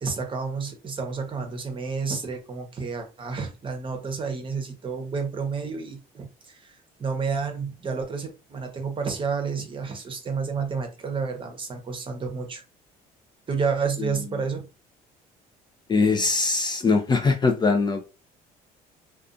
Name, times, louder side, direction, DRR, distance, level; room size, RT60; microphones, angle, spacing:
voice 1, 0.0-12.6 13.5-14.6, right 5 dB, 30° right, 5 dB, 0.8 m, -30 dB
voice 2, 15.9-18.1, left 4 dB, 25° left, 5 dB, 0.4 m, -22 dB
2.5 x 2.3 x 2.5 m, 0.30 s
cardioid pair, 100°, 17 cm